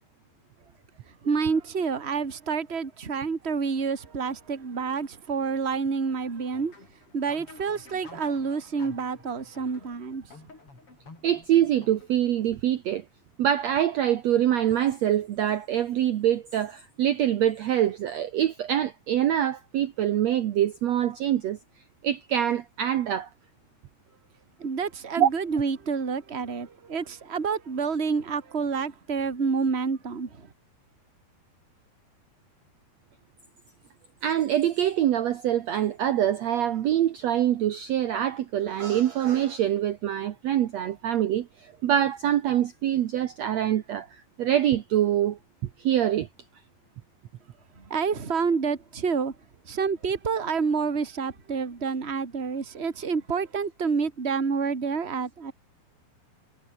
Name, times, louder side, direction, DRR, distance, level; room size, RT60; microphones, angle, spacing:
voice 1, 1.2-6.7 7.1-10.3 24.6-30.5 47.8-49.3 49.6-55.5, right 5 dB, 20° right, 1.7 m, -28 dB
sound 1, 6.5-12.4, left 3 dB, 35° left, 6.7 m, -51 dB
voice 2, 11.2-13.0 13.4-21.6 22.0-23.3 25.2-25.3 34.2-45.4 45.8-46.3, right 11 dB, 75° right, 1.5 m, -25 dB
omnidirectional pair, 4.6 m